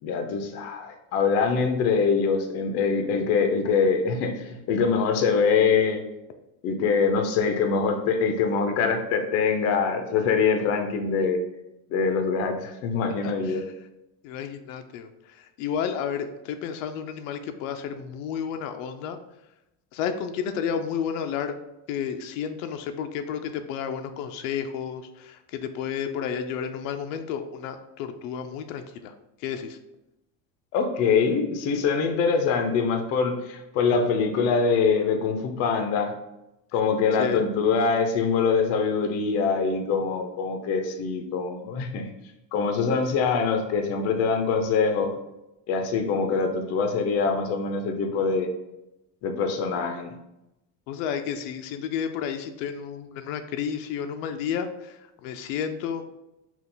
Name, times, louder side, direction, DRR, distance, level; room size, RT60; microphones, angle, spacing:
voice 1, 0.0-6.0 6.6-11.4 11.9-13.6 30.7-36.1 36.7-42.1 42.5-45.1 45.7-48.5 49.2-50.1, left 5 dB, 40° left, 5 dB, 0.6 m, -24 dB
voice 2, 13.2-13.6 14.2-15.1 15.6-19.2 19.9-21.5 21.9-29.1 29.4-29.8 37.2-37.4 50.9-54.7 55.2-56.0, left 7 dB, 85° left, 7 dB, 0.6 m, -31 dB
5.8 x 2.4 x 3.8 m, 0.91 s
cardioid pair, 165°, 38 cm